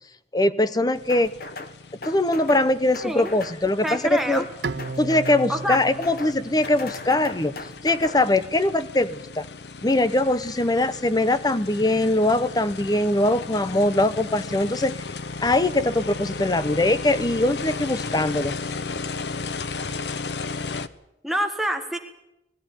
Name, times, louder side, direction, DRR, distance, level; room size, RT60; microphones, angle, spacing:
voice 1, 0.3-1.3 2.1-4.5 5.0-7.5 7.8-9.4 9.8-15.0 15.4-18.6, left 1 dB, 20° left, 15 dB, 0.7 m, -22 dB
sound 1, 1.0-20.9, left 4 dB, 70° left, 0.8 m, -35 dB
sound 2, 1.1-1.7 2.0-2.7 2.9-3.6 3.9-4.5 4.8-5.4 5.7-6.4 6.6-8.2, left 3 dB, 55° left, 1.5 m, -38 dB
voice 2, 3.0-3.3 3.8-4.5 5.5-5.8 21.2-22.0, right 1 dB, ahead, 5 dB, 1.5 m, -26 dB
Bowed string instrument, 4.6-7.9, right 3 dB, 75° right, 0.7 m, -35 dB
20.5 x 13.5 x 9.9 m, 0.90 s
head